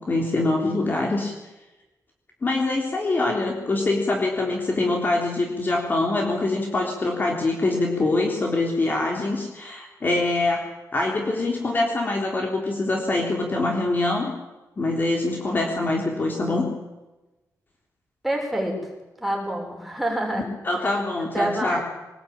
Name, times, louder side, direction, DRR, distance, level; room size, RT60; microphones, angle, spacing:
voice 1, 0.1-1.3 2.4-10.7 10.9-14.3 14.8-16.7 20.6-21.8, left 2 dB, 30° left, 1 dB, 3.7 m, -24 dB
voice 2, 18.2-18.8 19.2-20.4 21.3-21.8, right 1 dB, ahead, 0 dB, 6.8 m, -26 dB
25.0 x 19.5 x 9.0 m, 1.1 s
wide cardioid pair, 175°, 6 cm